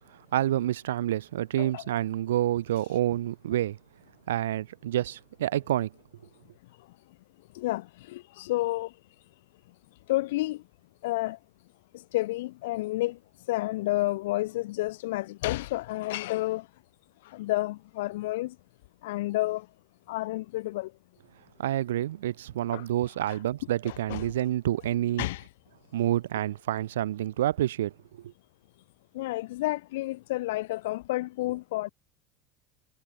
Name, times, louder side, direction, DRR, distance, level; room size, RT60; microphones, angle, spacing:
voice 1, 0.3-3.8 4.3-5.9 21.6-25.3 25.9-28.3, right 13 dB, 85° right, 0.5 m, -28 dB
voice 2, 7.5-8.9 10.1-10.6 11.0-11.4 11.9-13.2 13.5-16.6 17.2-18.5 19.0-19.7 20.1-20.9 22.7-22.9 23.3-23.4 23.9-24.3 25.2-25.5 29.1-31.9, left 18 dB, 80° left, 0.3 m, -30 dB
hypercardioid pair, 85°, 0 cm